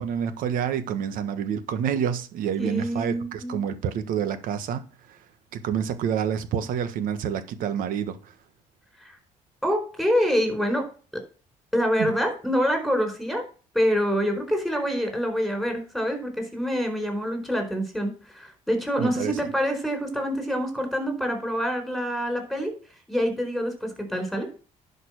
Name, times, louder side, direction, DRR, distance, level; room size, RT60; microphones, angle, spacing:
voice 1, 0.0-5.2 5.5-8.3 12.0-12.2 19.0-19.4, right 8 dB, 80° right, 1.4 m, -28 dB
voice 2, 2.6-3.6 9.0-9.1 9.6-10.9 11.7-13.4 13.7-22.7 23.1-24.5, equal, ahead, 4.3 m, -26 dB
11.0 x 5.4 x 6.5 m
cardioid pair, 115°, 14 cm